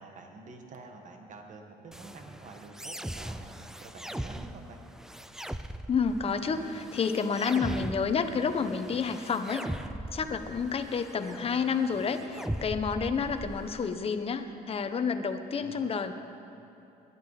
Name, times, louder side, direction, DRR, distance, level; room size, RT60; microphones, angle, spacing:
voice 1, 0.0-4.8 15.6-15.8, right 3 dB, 45° right, 3 dB, 1.7 m, -48 dB
sound 1, 1.9-13.9, right 1 dB, 5° right, 0.5 m, -40 dB
voice 2, 5.9-9.7 10.1-16.1, left 5 dB, 35° left, 8 dB, 1.0 m, -29 dB
20.5 x 11.5 x 4.9 m, 2.9 s
cardioid pair, 110°, 17 cm